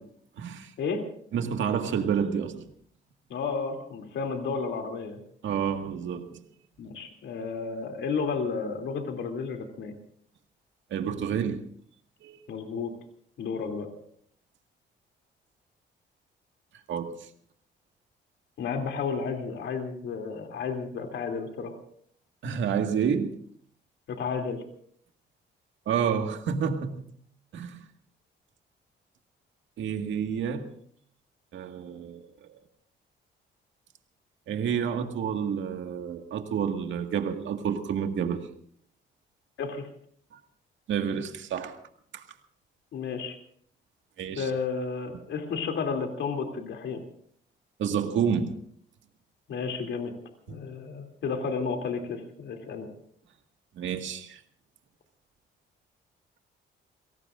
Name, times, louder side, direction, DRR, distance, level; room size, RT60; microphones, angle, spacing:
voice 1, 0.4-0.7 1.3-2.7 5.4-6.4 10.9-11.6 12.2-12.4 16.9-17.3 22.4-23.4 25.9-27.0 27.5-27.8 29.8-30.7 31.5-32.5 34.5-38.4 40.3-40.4 40.9-41.8 42.1-42.2 44.2-44.5 47.8-48.6 50.5-50.6 53.8-54.4, right 7 dB, 70° right, 5 dB, 2.0 m, -29 dB
voice 2, 3.3-5.2 6.8-9.9 12.5-12.9 13.4-13.9 18.6-21.7 24.1-24.6 39.6-39.9 42.9-43.4 44.4-47.0 49.5-50.1 50.5-52.9, left 5 dB, 70° left, 4 dB, 3.0 m, -32 dB
29.0 x 18.0 x 2.6 m, 0.63 s
cardioid pair, 90°, 20 cm